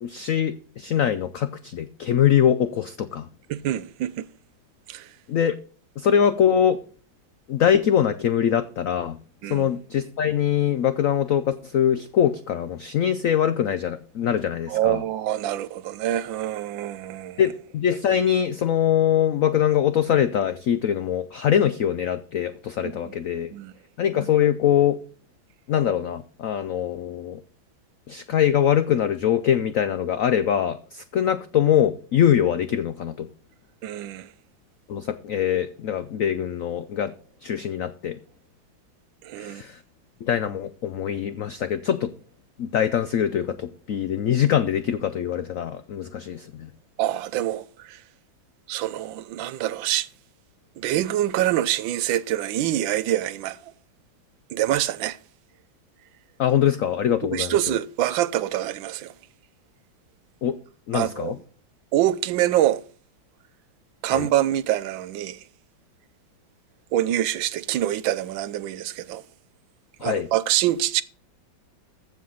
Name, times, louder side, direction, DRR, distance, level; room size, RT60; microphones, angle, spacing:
voice 1, 0.0-3.3 5.3-5.6 6.0-6.8 7.5-9.2 9.4-15.0 17.4-23.5 24.0-25.0 25.7-27.4 28.1-33.3 34.9-37.1 37.4-38.2 39.4-39.8 40.2-42.1 42.6-46.7 56.4-57.8 60.4-60.6 60.9-61.4 64.1-64.3 70.0-70.3, left 9 dB, 85° left, 0.7 m, -23 dB
voice 2, 3.5-4.3 4.9-5.1 9.4-9.7 14.7-17.5 22.8-23.1 23.5-23.7 33.8-34.3 39.2-39.6 47.0-48.0 48.7-50.1 50.8-53.7 54.5-55.2 57.2-59.1 60.9-61.3 61.9-62.8 64.0-65.4 66.9-69.2 70.0-71.0, right 13 dB, 80° right, 1.3 m, -25 dB
15.0 x 5.2 x 3.8 m
omnidirectional pair, 2.1 m